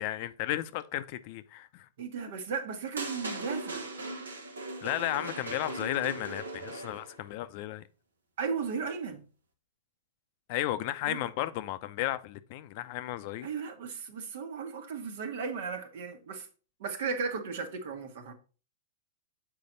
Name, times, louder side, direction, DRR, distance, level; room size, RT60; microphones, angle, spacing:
voice 1, 0.0-1.9 4.8-7.8 10.5-13.5, left 14 dB, 50° left, 0.5 m, -34 dB
voice 2, 2.0-3.9 8.4-9.2 11.1-11.3 13.4-16.5 16.8-18.3, right 5 dB, 65° right, 1.3 m, -35 dB
sound 1, 3.0-7.2, right 2 dB, 85° right, 1.2 m, -38 dB
6.8 x 4.7 x 3.9 m
hypercardioid pair, 105°, 0 cm